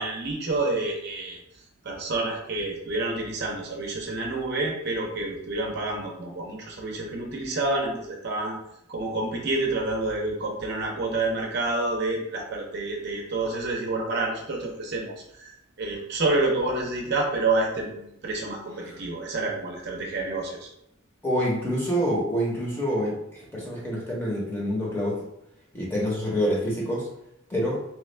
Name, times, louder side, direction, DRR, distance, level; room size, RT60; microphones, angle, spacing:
voice 1, 0.0-1.4 1.8-8.6 8.9-20.7, right 2 dB, 50° right, 0 dB, 0.6 m, -28 dB
voice 2, 21.2-25.2 25.7-27.1 27.5-27.8, equal, 10° left, -5 dB, 0.8 m, -27 dB
3.0 x 2.3 x 3.2 m, 0.80 s
head